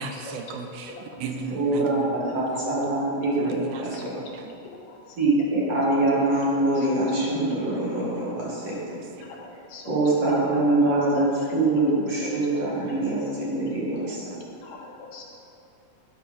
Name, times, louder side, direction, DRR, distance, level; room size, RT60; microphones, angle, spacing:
voice 1, 0.0-2.2 3.4-4.1 8.3-9.3 13.9-14.6, right 4 dB, 85° right, 4 dB, 2.2 m, -37 dB
voice 2, 1.5-3.9 5.2-9.0 9.9-14.2, right 2 dB, 55° right, -6 dB, 2.9 m, -24 dB
voice 3, 4.8-5.2 6.8-6.9 9.2-10.3 10.7-10.8 11.1-11.5 11.8-11.9 12.1-12.6 13.0-13.1 14.6-15.2, left 4 dB, 70° left, -1 dB, 2.1 m, -41 dB
11.5 x 4.8 x 5.2 m, 2.7 s
omnidirectional pair, 3.5 m